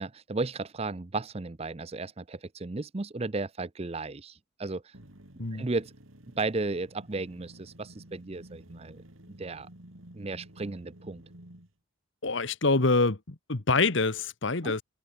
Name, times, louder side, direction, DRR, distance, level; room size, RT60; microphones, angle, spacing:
voice 1, 0.0-4.9 5.5-5.9 6.4-9.0 9.4-9.7 10.1-11.2 14.6-14.8, right 3 dB, 30° right, 0.6 m, -34 dB
sound 1, 4.9-11.7, right 1 dB, 70° right, 3.7 m, -51 dB
voice 2, 12.2-14.8, left 3 dB, 60° left, 1.3 m, -26 dB
head